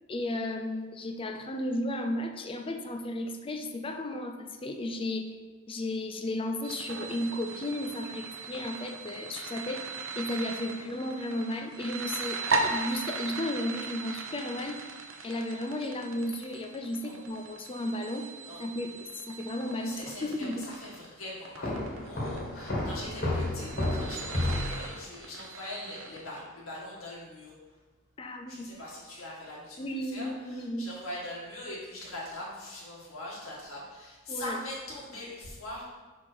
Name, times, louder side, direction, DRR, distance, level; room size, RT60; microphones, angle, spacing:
voice 1, 0.1-5.4 5.7-9.8 10.2-14.8 15.2-18.3 18.6-20.6 28.2-28.7 29.8-30.9 34.3-34.6, left 1 dB, 25° left, 5 dB, 0.4 m, -34 dB
sound 1, 6.6-26.4, right 4 dB, 70° right, 0.8 m, -38 dB
voice 2, 19.8-27.5 28.5-35.8, left 1 dB, 90° left, -5 dB, 2.0 m, -42 dB
Walk footsteps, 21.6-24.9, left 1 dB, 50° left, 1.7 m, -31 dB
5.7 x 4.4 x 4.5 m, 1.3 s
head